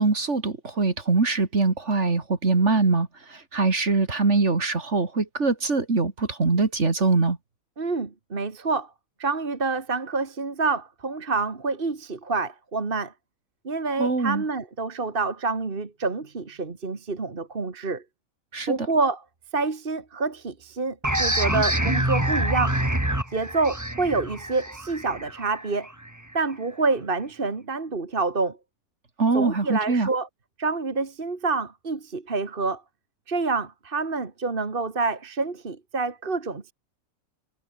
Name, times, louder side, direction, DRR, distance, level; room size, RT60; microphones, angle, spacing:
voice 1, 0.0-7.4 14.0-14.4 18.5-18.7 29.2-30.1, right 3 dB, 55° right, 3.0 m, -23 dB
voice 2, 7.8-8.9 9.2-13.1 13.6-18.0 18.7-19.2 19.5-22.8 23.3-25.9 26.3-28.6 29.3-30.3 30.6-32.8 33.3-36.7, right 3 dB, 40° right, 2.1 m, -27 dB
sound 1, 21.0-26.4, right 1 dB, 10° right, 2.9 m, -26 dB
omnidirectional pair, 1.4 m